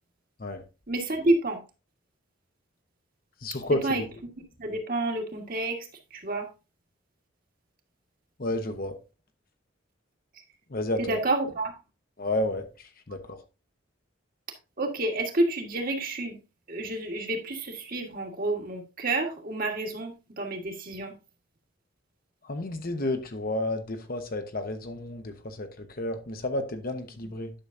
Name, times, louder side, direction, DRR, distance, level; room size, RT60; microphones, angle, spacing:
voice 1, 0.9-1.6 3.8-4.0 4.6-5.9 6.1-6.5 11.0-11.7 14.8-16.4 16.7-21.1 27.2-27.3, right 2 dB, 45° right, 1.6 m, -29 dB
voice 2, 3.4-3.9 8.4-9.0 10.7-11.2 12.2-13.4 22.4-27.5, left 1 dB, 50° left, 1.0 m, -31 dB
10.0 x 6.2 x 2.6 m
head